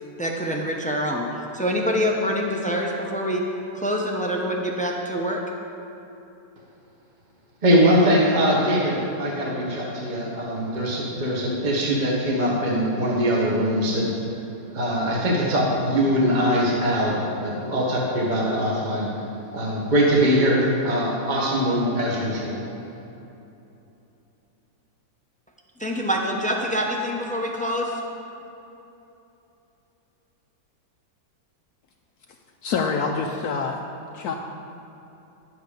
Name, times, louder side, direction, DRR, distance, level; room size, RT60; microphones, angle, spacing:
voice 1, 0.2-1.3 1.5-3.4 3.7-5.4 25.8-28.0, equal, 10° left, 0 dB, 0.4 m, -25 dB
voice 2, 7.6-14.3 14.7-19.2 19.5-22.6, equal, 25° right, -3 dB, 1.5 m, -22 dB
voice 3, 32.6-33.8 34.1-34.3, left 5 dB, 70° left, 2 dB, 1.1 m, -26 dB
11.5 x 8.0 x 5.1 m, 2.9 s
omnidirectional pair, 1.9 m